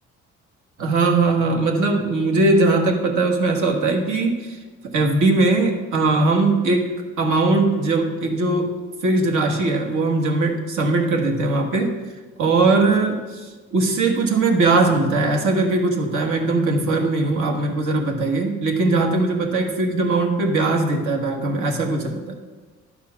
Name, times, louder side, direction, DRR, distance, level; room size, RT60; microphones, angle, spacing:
voice 1, 0.8-4.6 4.9-8.7 9.0-11.9 12.4-22.4, right 3 dB, 80° right, 2 dB, 1.4 m, -20 dB
11.0 x 4.4 x 5.8 m, 1.3 s
cardioid pair, 90°, 30 cm